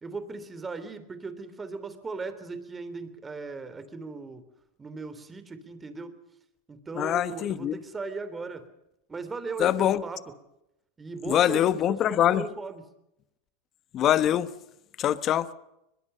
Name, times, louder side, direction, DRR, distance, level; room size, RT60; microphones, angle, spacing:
voice 1, 0.0-4.4 4.8-6.2 6.7-8.7 9.1-10.2 11.0-12.9, right 4 dB, 15° right, 3.2 m, -38 dB
voice 2, 7.0-7.7 9.6-10.0 11.3-12.4 13.9-14.5 15.0-15.5, left 11 dB, 40° left, 1.2 m, -23 dB
22.5 x 22.0 x 6.7 m
supercardioid pair, 115°, 0 cm